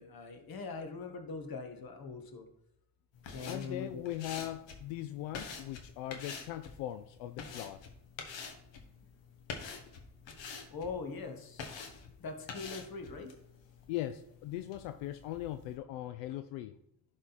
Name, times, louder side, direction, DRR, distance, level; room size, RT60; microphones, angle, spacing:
voice 1, 0.0-2.5 3.3-4.0 10.7-13.3, left 4 dB, 50° left, 6 dB, 1.6 m, -42 dB
sound 1, 3.1-15.8, left 5 dB, 65° left, 1.5 m, -48 dB
voice 2, 3.5-7.8 13.9-16.8, left 13 dB, 85° left, 10 dB, 0.6 m, -40 dB
11.0 x 4.0 x 4.1 m, 0.79 s
supercardioid pair, 65°, 47 cm